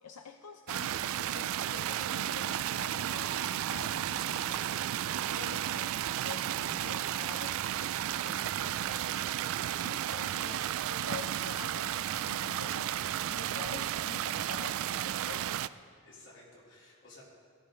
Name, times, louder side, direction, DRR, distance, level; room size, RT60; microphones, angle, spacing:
voice 1, 0.0-4.7 5.3-9.5 9.8-15.7, left 5 dB, 90° left, 5 dB, 0.6 m, -48 dB
sound 1, 0.7-15.7, right 11 dB, 65° right, 0.3 m, -33 dB
voice 2, 15.0-15.4 16.0-17.2, left 2 dB, 55° left, -5 dB, 3.7 m, -56 dB
17.0 x 13.5 x 3.9 m, 2.5 s
head